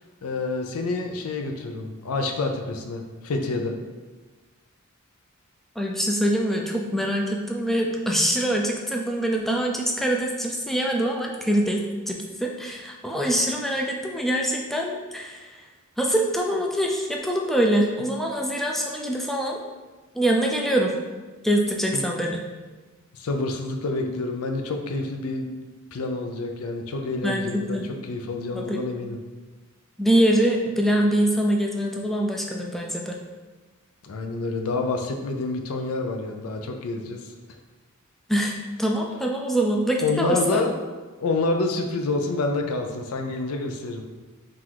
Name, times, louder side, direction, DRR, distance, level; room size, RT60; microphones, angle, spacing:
voice 1, 0.2-3.7 21.9-22.0 23.1-25.5 25.9-27.8 28.1-29.2 34.0-37.3 40.0-40.7 41.2-44.0, left 3 dB, 80° left, 4 dB, 0.5 m, -28 dB
voice 2, 5.8-15.6 16.0-19.6 20.1-21.0 21.4-22.4 27.2-27.9 28.5-28.8 30.0-33.2 38.3-40.6, right 1 dB, ahead, 0 dB, 0.3 m, -24 dB
3.8 x 2.5 x 4.5 m, 1.3 s
head